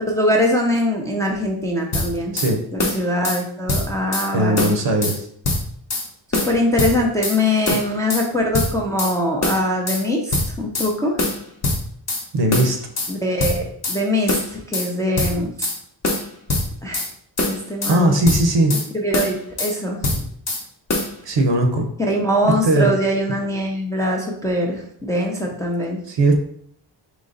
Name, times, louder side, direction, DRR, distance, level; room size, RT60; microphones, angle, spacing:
voice 1, 0.1-2.4 2.7-4.8 6.3-11.1 13.1-15.5 16.8-17.0 17.5-18.2 18.7-20.0 22.0-26.0, left 1 dB, 5° left, -1 dB, 0.5 m, -22 dB
sound 1, 1.9-2.5 2.8-3.4 3.7-4.3 4.6-5.2 5.4-6.1 6.3-7.4 7.7-8.3 8.5-9.1 9.4-10.0 10.3-10.9 11.2-12.2 12.5-13.1 13.4-14.0 14.3-14.9 15.2-15.8 16.0-17.1 17.4-18.0 18.3-18.9 19.1-19.7 20.0-20.6 20.9-21.1, left 2 dB, 35° left, 0.8 m, -23 dB
voice 2, 4.3-5.3 12.3-12.8 17.8-18.8 21.2-21.9 22.4-23.0 26.1-26.4, right 1 dB, 70° right, 3 dB, 0.8 m, -18 dB
4.0 x 3.0 x 3.8 m, 0.65 s
wide cardioid pair, 150°, 45 cm